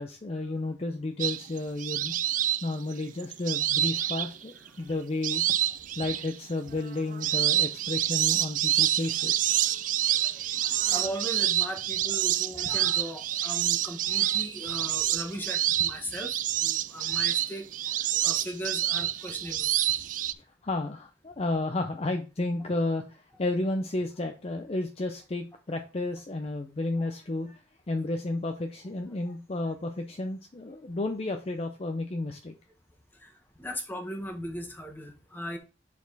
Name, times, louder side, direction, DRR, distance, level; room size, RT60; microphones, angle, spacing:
voice 1, 0.0-2.1 2.6-5.4 6.0-9.6 18.1-18.2 20.3-27.6 27.9-32.5, left 2 dB, 35° left, 5 dB, 0.5 m, -32 dB
sound 1, 1.2-4.7 5.2-6.3 6.8-20.3, right 12 dB, 45° right, 0.3 m, -27 dB
voice 2, 10.1-19.7 27.0-27.1 29.3-29.4 33.1-35.6, equal, 10° left, 2 dB, 1.3 m, -38 dB
7.3 x 4.2 x 4.0 m, 0.31 s
head